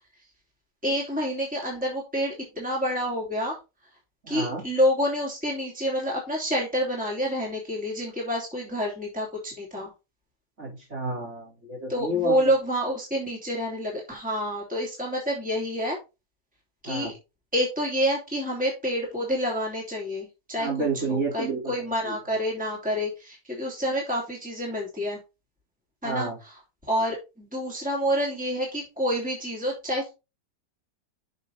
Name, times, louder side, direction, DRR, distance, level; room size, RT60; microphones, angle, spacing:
voice 1, 0.8-3.6 4.3-9.9 11.9-16.0 16.8-17.1 17.5-20.7 21.1-25.2 26.0-26.3 26.9-30.1, equal, 5° right, -3 dB, 3.0 m, -28 dB
voice 2, 4.2-4.6 10.6-12.5 16.8-17.1 20.6-22.1 26.0-26.4, right 2 dB, 40° right, -3 dB, 4.4 m, -30 dB
6.8 x 6.3 x 4.1 m, 0.27 s
omnidirectional pair, 1.9 m